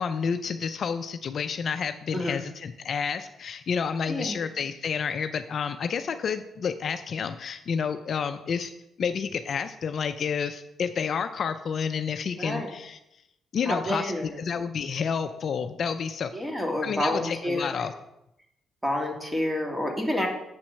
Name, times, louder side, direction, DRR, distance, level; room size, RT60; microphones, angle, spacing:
voice 1, 0.0-8.7 9.0-13.0 13.5-16.3 16.8-17.9, left 6 dB, 55° left, 9 dB, 0.5 m, -30 dB
voice 2, 12.4-12.7 13.6-14.4 16.3-17.9 18.8-20.3, left 1 dB, 10° right, 1 dB, 1.9 m, -29 dB
8.0 x 4.3 x 6.3 m, 0.85 s
cardioid pair, 90°, 0 cm